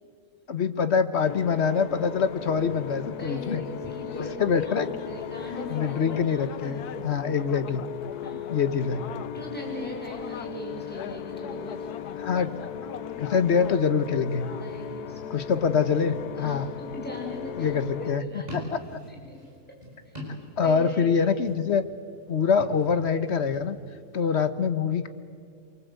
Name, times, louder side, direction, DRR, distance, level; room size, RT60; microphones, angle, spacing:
voice 1, 0.5-3.6 4.2-4.9 5.7-7.8 8.5-9.0 12.2-12.5 13.2-14.5 15.3-16.7 17.6-18.2 18.7-18.8 20.6-21.8 22.3-23.8 24.1-25.1, left 6 dB, 50° left, 11 dB, 1.3 m, -25 dB
sound 1, 1.2-18.2, left 8 dB, 90° left, 1.4 m, -37 dB
voice 2, 3.2-4.3 4.6-7.1 8.2-8.6 9.3-12.4 14.5-15.4 16.4-18.5 19.1-19.4 19.7-19.8 20.0-20.1 20.6-21.2 24.2-24.3, left 1 dB, 5° left, -2 dB, 6.1 m, -40 dB
Plastic Bottle Handling, 18.4-21.0 21.3-21.9 22.5-23.7, left 1 dB, 25° right, 6.0 m, -40 dB
28.0 x 24.0 x 8.2 m, 2.3 s
omnidirectional pair, 1.6 m